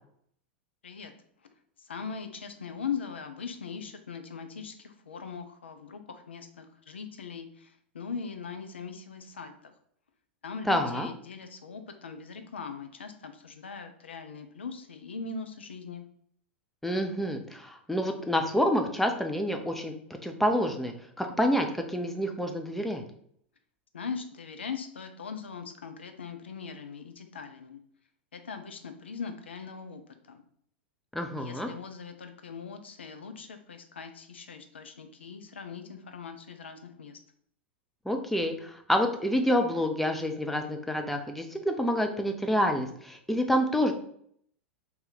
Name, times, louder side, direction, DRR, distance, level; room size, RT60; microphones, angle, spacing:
voice 1, 1.8-9.7 10.4-16.1 23.9-27.8 28.3-30.4 31.4-37.2, left 5 dB, 70° left, 7 dB, 0.5 m, -40 dB
voice 2, 10.7-11.1 16.8-19.9 20.2-23.0 31.1-31.7 38.1-43.9, equal, 5° left, 4 dB, 0.5 m, -28 dB
2.8 x 2.8 x 3.8 m, 0.66 s
figure-of-eight pair, 90°, 6 cm